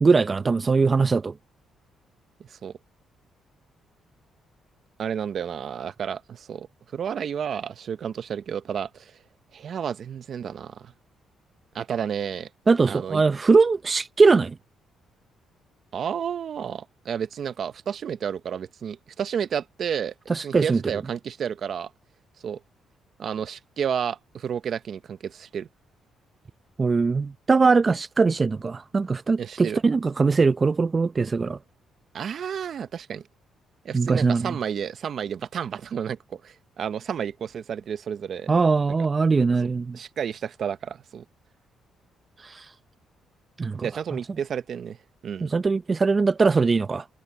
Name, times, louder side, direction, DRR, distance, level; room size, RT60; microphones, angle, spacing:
voice 1, 0.0-1.3 12.7-14.6 20.3-20.8 26.8-31.6 33.9-34.5 38.5-40.0 42.4-42.7 43.6-43.9 45.4-47.1, right 4 dB, 30° right, 0.6 m, -21 dB
voice 2, 2.4-2.7 5.0-6.7 6.9-9.2 9.5-10.9 11.7-12.5 12.9-13.2 15.9-20.1 20.4-21.9 22.4-22.6 23.2-25.7 29.4-29.8 32.1-33.2 33.8-38.5 39.9-41.2 43.8-45.0 45.2-45.5, right 8 dB, 55° right, 0.9 m, -31 dB
cardioid pair, 90°, 0 cm